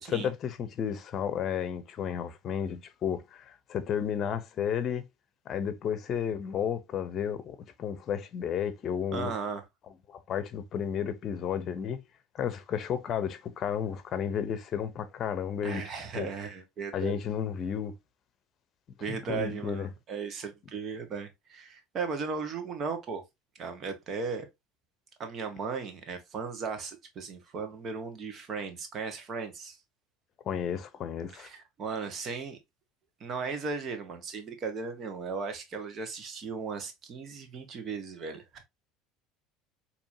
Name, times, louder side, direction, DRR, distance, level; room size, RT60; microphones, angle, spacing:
voice 1, 0.0-5.0 5.5-9.3 10.1-12.0 12.3-15.8 16.1-16.3 16.9-17.9 19.1-19.9 30.5-31.5, left 8 dB, 50° left, 0.7 m, -32 dB
voice 2, 9.1-9.6 15.6-17.2 19.0-23.2 23.5-24.5 25.2-29.8 31.3-32.6 33.2-38.4, right 5 dB, 45° right, 1.3 m, -36 dB
4.4 x 3.0 x 2.7 m
hypercardioid pair, 85°, 0 cm